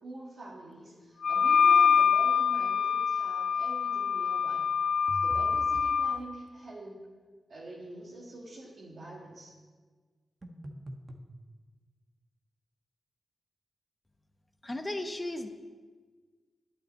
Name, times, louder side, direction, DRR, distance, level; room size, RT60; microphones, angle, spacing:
voice 1, 0.0-4.7 5.1-7.0 7.5-9.5, right 2 dB, 65° right, -5 dB, 1.9 m, -45 dB
Wind instrument woodwind instrument, 1.2-6.2, left 7 dB, 70° left, 0.4 m, -25 dB
sound 1, 5.1-6.0 10.4-11.3, right 1 dB, 40° right, 1.3 m, -43 dB
voice 2, 14.6-15.5, left 1 dB, 25° left, 7 dB, 1.1 m, -35 dB
8.9 x 6.2 x 7.9 m, 1.4 s
supercardioid pair, 45°, 0 cm